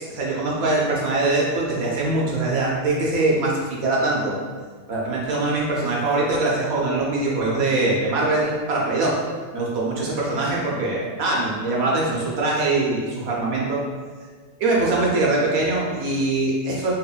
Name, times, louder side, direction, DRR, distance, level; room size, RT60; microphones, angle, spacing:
voice 1, 0.1-4.3 4.9-9.1 9.5-13.8 14.6-16.9, right 2 dB, 80° right, -4 dB, 1.3 m, -22 dB
4.4 x 3.0 x 2.4 m, 1.5 s
omnidirectional pair, 1.5 m